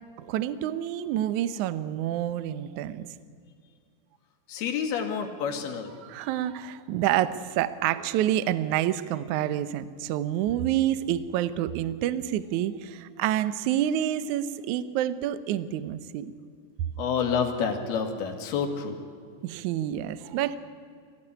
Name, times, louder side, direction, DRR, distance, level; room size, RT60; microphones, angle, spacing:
voice 1, 0.2-3.1 6.0-16.3 19.4-20.6, right 12 dB, 75° right, 14 dB, 1.8 m, -28 dB
voice 2, 4.5-6.0 17.0-19.0, left 6 dB, 80° left, 4 dB, 3.9 m, -28 dB
24.0 x 16.0 x 9.9 m, 2.3 s
omnidirectional pair, 4.5 m